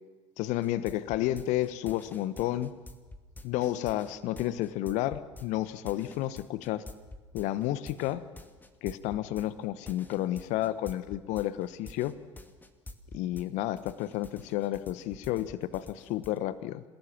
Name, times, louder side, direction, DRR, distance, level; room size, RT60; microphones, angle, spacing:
voice 1, 0.4-2.7 3.4-6.8 7.3-8.2 8.8-12.1 13.1-16.8, left 14 dB, 50° left, 15 dB, 1.1 m, -31 dB
sound 1, 0.6-13.5 13.8-16.4, left 2 dB, 10° left, 2.2 m, -48 dB
28.0 x 17.5 x 7.5 m, 1.3 s
figure-of-eight pair, 70°, 16 cm